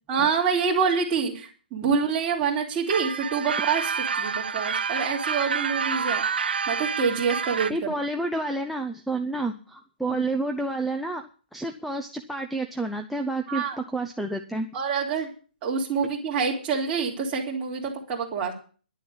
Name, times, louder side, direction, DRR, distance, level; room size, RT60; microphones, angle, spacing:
voice 1, 0.1-6.2 6.7-7.7 10.1-10.2 13.5-13.8 14.7-15.3 15.6-18.5, right 5 dB, 20° right, -2 dB, 2.9 m, -26 dB
sound 1, 2.9-7.7, right 6 dB, 85° right, 0.9 m, -28 dB
voice 2, 7.7-14.7, right 2 dB, ahead, 7 dB, 0.5 m, -29 dB
11.5 x 7.1 x 9.6 m, 0.39 s
hypercardioid pair, 170°, 5 cm